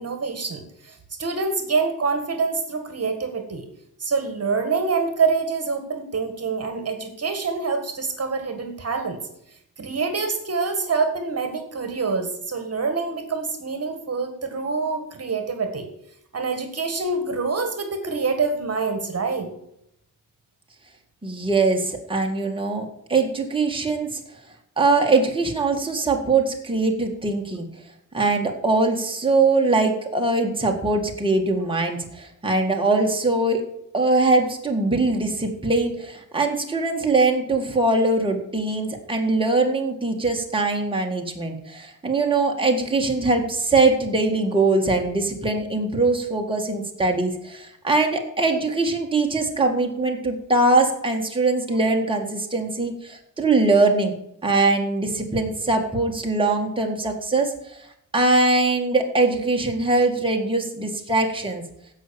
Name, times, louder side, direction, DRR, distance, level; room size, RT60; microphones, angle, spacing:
voice 1, 0.0-3.7 4.0-9.2 9.8-15.9 16.3-19.5, right 4 dB, 50° right, 6 dB, 1.8 m, -26 dB
voice 2, 21.2-24.2 24.8-27.7 28.1-33.6 33.9-54.1 54.4-57.8 58.1-61.6, right 3 dB, 15° right, 1 dB, 1.9 m, -22 dB
15.5 x 5.7 x 7.0 m, 0.75 s
wide cardioid pair, 130°, 32 cm